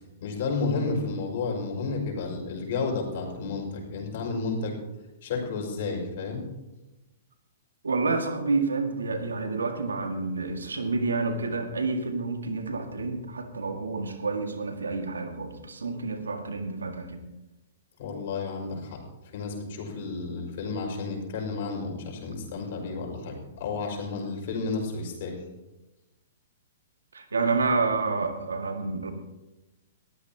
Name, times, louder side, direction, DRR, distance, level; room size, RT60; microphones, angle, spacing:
voice 1, 0.2-4.7 5.2-6.4 18.0-19.0 19.3-25.4, left 4 dB, 60° left, 1 dB, 5.4 m, -31 dB
voice 2, 7.8-17.2 27.1-29.1, right 3 dB, 90° right, 5 dB, 1.9 m, -29 dB
21.0 x 15.0 x 2.9 m, 1.0 s
hypercardioid pair, 125°, 0 cm